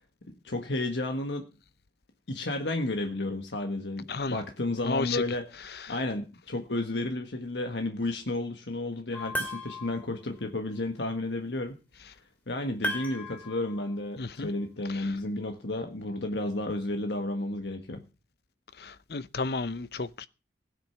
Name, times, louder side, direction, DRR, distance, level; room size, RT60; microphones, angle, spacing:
voice 1, 0.4-1.5 2.3-5.5 5.9-11.7 12.5-18.0, left 2 dB, 80° left, 1.5 m, -32 dB
voice 2, 4.8-5.2 14.2-14.5 14.9-15.1 18.8-20.3, left 3 dB, 60° left, 0.7 m, -32 dB
sound 1, 9.1-10.1 12.8-13.9, equal, 10° left, 2.7 m, -35 dB
17.0 x 9.3 x 5.8 m
head